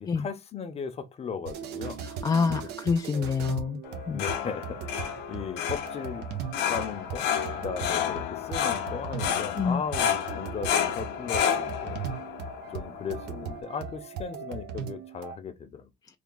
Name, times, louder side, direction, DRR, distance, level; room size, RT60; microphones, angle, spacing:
voice 1, 0.0-2.1 2.5-2.7 4.1-6.3 6.7-7.3 7.5-12.0 12.7-15.9, left 6 dB, 40° left, 0.7 m, -37 dB
sound 1, 1.5-15.4, right 7 dB, 85° right, 0.7 m, -38 dB
voice 2, 2.0-4.2 9.6-9.8, left 5 dB, 25° left, 0.4 m, -27 dB
sound 2, 3.8-13.6, left 8 dB, 85° left, 0.6 m, -31 dB
3.4 x 2.3 x 3.8 m
cardioid pair, 110°, 17 cm